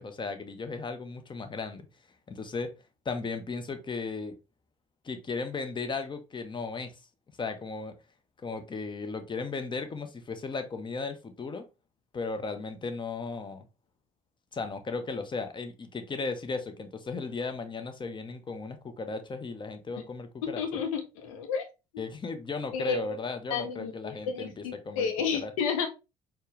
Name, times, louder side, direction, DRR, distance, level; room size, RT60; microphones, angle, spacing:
voice 1, 0.0-1.9 2.3-2.7 3.0-4.4 5.0-7.0 7.4-7.9 8.4-11.7 12.1-13.7 14.5-20.8 22.0-25.1 25.3-25.5, left 4 dB, 25° left, 0.8 m, -36 dB
voice 2, 20.4-21.7 21.9-22.0 22.7-23.2 23.5-25.9, left 6 dB, 75° left, 0.7 m, -31 dB
4.4 x 2.3 x 3.2 m
figure-of-eight pair, 55°, 17 cm